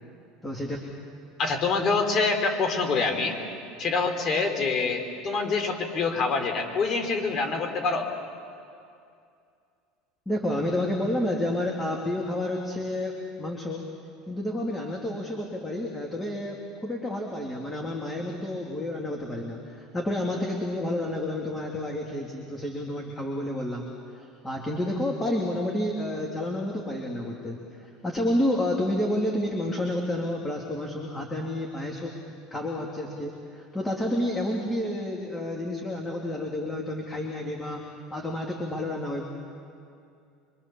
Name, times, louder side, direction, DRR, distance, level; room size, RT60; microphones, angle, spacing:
voice 1, 0.4-0.8 10.3-13.9 14.3-32.1 32.5-39.2, left 1 dB, 15° left, 0 dB, 2.9 m, -30 dB
voice 2, 1.4-3.4 3.8-8.1, left 4 dB, 45° left, 5 dB, 3.7 m, -26 dB
25.0 x 24.0 x 7.1 m, 2.4 s
supercardioid pair, 105°, 0 cm